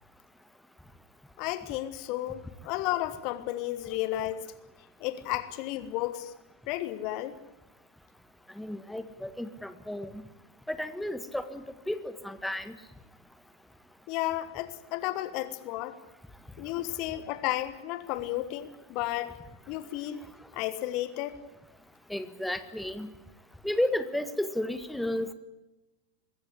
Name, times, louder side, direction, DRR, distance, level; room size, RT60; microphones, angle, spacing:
voice 1, 1.4-4.5 5.0-6.3 6.7-7.4 14.1-16.0 16.6-19.4 19.7-21.4, left 15 dB, 45° left, 14 dB, 1.4 m, -33 dB
voice 2, 8.6-10.2 10.7-12.7 22.1-23.1 23.6-25.3, left 1 dB, ahead, 11 dB, 1.6 m, -33 dB
21.0 x 16.5 x 9.8 m, 1.1 s
figure-of-eight pair, 90°, 0 cm